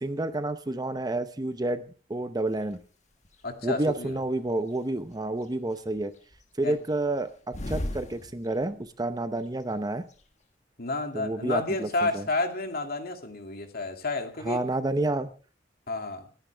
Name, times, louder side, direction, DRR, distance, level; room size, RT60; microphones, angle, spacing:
voice 1, 0.0-1.8 2.1-2.8 3.6-6.1 6.6-10.1 11.1-12.2 14.4-15.3, right 2 dB, 20° right, 11 dB, 0.8 m, -29 dB
sound 1, 2.6-2.8 3.2-4.2 4.7-5.5 5.8-8.9 9.2-9.3 9.4-10.2, left 1 dB, 40° left, 1.3 m, -37 dB
voice 2, 3.4-4.2 6.6-6.8 10.8-14.6 15.9-16.3, left 3 dB, 55° left, 5 dB, 2.4 m, -30 dB
28.0 x 10.5 x 3.4 m, 0.39 s
head